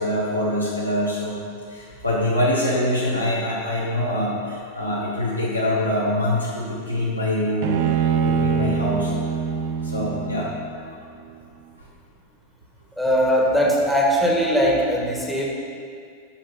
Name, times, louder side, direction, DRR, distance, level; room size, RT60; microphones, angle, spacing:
voice 1, 0.0-1.4 1.7-7.8 8.2-9.3 9.8-10.9, left 1 dB, 85° left, -6 dB, 1.5 m, -24 dB
Bowed string instrument, 7.6-10.9, right 6 dB, 50° right, 0.6 m, -24 dB
voice 2, 13.0-15.5, equal, ahead, -3 dB, 1.7 m, -20 dB
8.9 x 6.3 x 5.6 m, 2.3 s
figure-of-eight pair, 90°, 0 cm